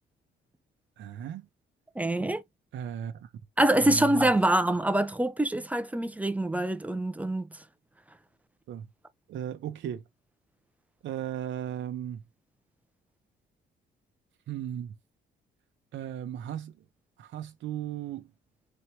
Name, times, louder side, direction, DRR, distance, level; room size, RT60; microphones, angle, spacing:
voice 1, 1.0-1.5 2.7-3.3 3.8-4.3 8.7-8.9 9.3-10.0 11.0-12.2 14.5-14.9 15.9-16.7 17.2-18.3, right 10 dB, 75° right, 0.8 m, -36 dB
voice 2, 2.0-2.4 3.6-7.5, right 1 dB, 5° right, 0.6 m, -25 dB
4.3 x 3.1 x 2.9 m
cardioid pair, 90°, 20 cm